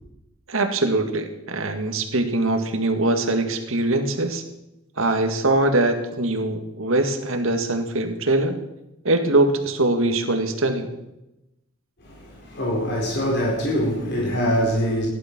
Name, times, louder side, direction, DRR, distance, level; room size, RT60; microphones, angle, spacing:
voice 1, 0.5-4.4 5.0-8.6 9.0-10.9, right 2 dB, 75° right, 1.9 m, -22 dB
voice 2, 12.0-15.1, equal, 55° left, 4.3 m, -24 dB
16.0 x 11.5 x 6.1 m
head